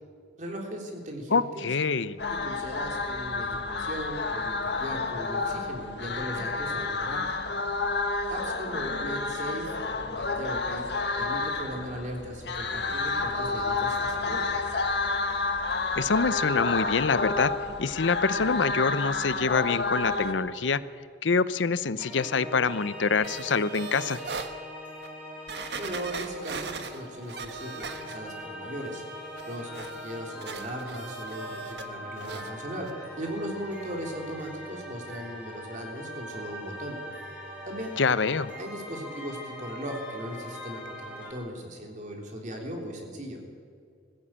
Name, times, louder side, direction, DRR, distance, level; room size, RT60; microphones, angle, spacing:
voice 1, 0.4-1.7 2.3-7.2 8.3-10.9 11.2-14.6 25.8-29.0 29.4-32.9 33.2-37.0 37.7-38.0 38.6-43.4, equal, 45° right, 2 dB, 3.7 m, -38 dB
voice 2, 1.3-2.2 16.0-17.5 17.8-20.8 21.2-24.2 38.0-38.5, left 4 dB, 90° left, 15 dB, 0.7 m, -25 dB
sound 1, 2.2-20.3, left 3 dB, 65° left, 1.7 m, -30 dB
sound 2, 22.0-41.3, equal, 10° right, 4.3 m, -42 dB
sound 3, 23.2-24.5 25.0-25.1 25.5-28.4 28.8-31.9 32.2-32.5 32.9-33.0, right 4 dB, 65° right, 1.5 m, -40 dB
20.5 x 15.5 x 8.9 m, 2.2 s
head